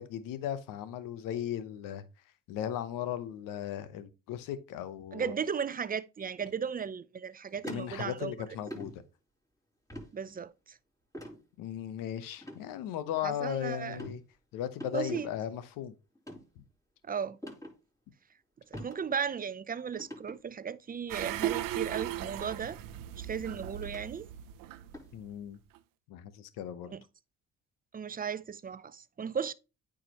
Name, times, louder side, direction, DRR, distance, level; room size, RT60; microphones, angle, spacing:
voice 1, 0.0-2.0 2.5-5.3 7.7-8.9 11.6-14.2 14.5-15.9 16.6-16.7 25.1-25.6 26.1-26.9, left 10 dB, 85° left, 0.9 m, -37 dB
voice 2, 5.1-8.3 10.1-10.5 13.2-14.0 14.9-15.3 17.0-17.4 18.7-22.8 23.2-24.3 26.9-27.0 27.9-29.5, right 7 dB, 25° right, 0.5 m, -36 dB
sound 1, 7.6-8.3 8.7-8.9 9.9-10.1 11.1-11.4 12.4-12.6 13.1-13.5 13.9-14.2 14.8-15.3 16.2-16.4 17.4-17.7 18.7-19.0 19.3-19.4 19.9-20.4 21.3-21.5 22.6-22.7 23.8-24.0 24.9-25.1, equal, 10° left, 3.7 m, -43 dB
sound 2, 21.1-25.4 25.7-25.8, right 13 dB, 85° right, 0.6 m, -37 dB
8.9 x 5.0 x 2.9 m
supercardioid pair, 70°, 32 cm